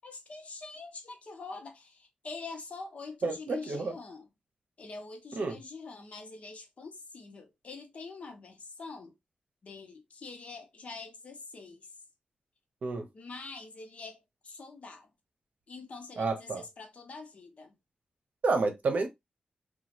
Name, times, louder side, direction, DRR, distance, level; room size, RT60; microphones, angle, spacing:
voice 1, 0.0-4.3 4.8-9.1 9.6-11.9 13.1-15.1 15.7-17.7, left 3 dB, 55° left, 0.8 m, -45 dB
voice 2, 3.2-3.9 5.3-5.6 12.8-13.1 16.2-16.6 18.4-19.1, right 3 dB, 75° right, 0.7 m, -29 dB
3.0 x 2.3 x 2.7 m
wide cardioid pair, 125°, 3 cm